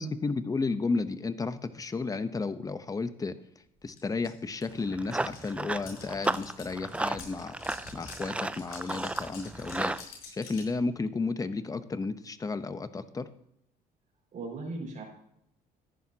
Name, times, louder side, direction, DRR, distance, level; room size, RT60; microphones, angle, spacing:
voice 1, 0.0-3.4 3.8-7.5 7.9-10.0 10.3-13.3, left 3 dB, 20° left, 11 dB, 0.8 m, -33 dB
sound 1, 4.0-4.1 4.2-10.7, left 5 dB, 65° left, 5.2 m, -48 dB
Run, 4.7-10.0, right 2 dB, 5° right, 0.3 m, -34 dB
voice 2, 14.3-15.0, right 3 dB, 50° right, 1 dB, 5.3 m, -38 dB
14.0 x 10.5 x 2.8 m, 0.74 s
cardioid pair, 110°, 17 cm